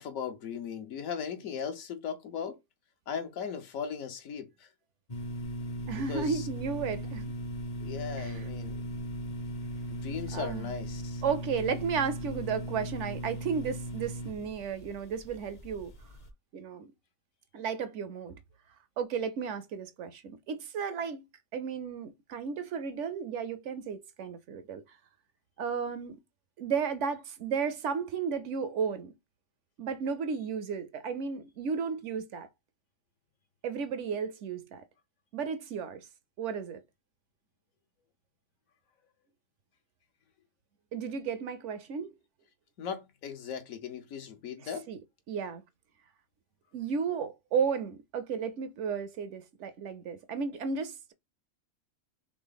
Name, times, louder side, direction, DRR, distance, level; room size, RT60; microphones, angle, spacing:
voice 1, 0.0-2.6 3.1-4.7 6.1-6.5 7.8-8.9 9.9-11.2 42.8-44.9, left 7 dB, 75° left, 1.3 m, -38 dB
sound 1, 5.1-16.3, equal, 40° left, 0.6 m, -38 dB
voice 2, 5.9-7.3 8.2-8.4 10.3-10.7 11.2-15.9 16.5-16.9 17.5-18.4 19.0-21.3 21.5-25.0 25.6-26.2 26.6-29.1 29.8-32.5 33.6-34.8 35.3-36.1 36.4-36.8 40.9-42.1 44.9-45.0 45.3-45.6 46.7-51.1, right 6 dB, 65° right, 0.9 m, -33 dB
3.8 x 3.3 x 3.9 m
omnidirectional pair, 1.4 m